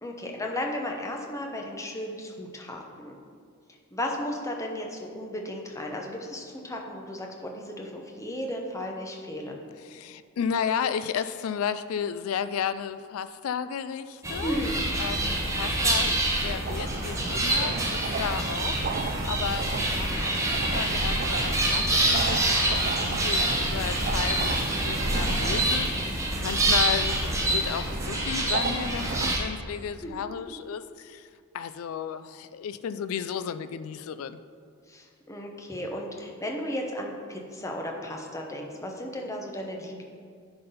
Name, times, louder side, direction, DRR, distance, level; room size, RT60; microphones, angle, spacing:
voice 1, 0.0-3.2 3.9-9.6 14.4-14.9 30.0-30.1 34.9-40.0, left 1 dB, 15° left, 1 dB, 0.8 m, -34 dB
voice 2, 9.8-14.6 15.0-31.3 31.5-34.4, left 7 dB, 65° left, 13 dB, 0.3 m, -33 dB
sound 1, 14.2-29.4, right 1 dB, 15° right, 1.0 m, -26 dB
sound 2, 16.6-29.3, right 4 dB, 40° right, 0.4 m, -35 dB
10.5 x 4.0 x 5.5 m, 2.2 s
head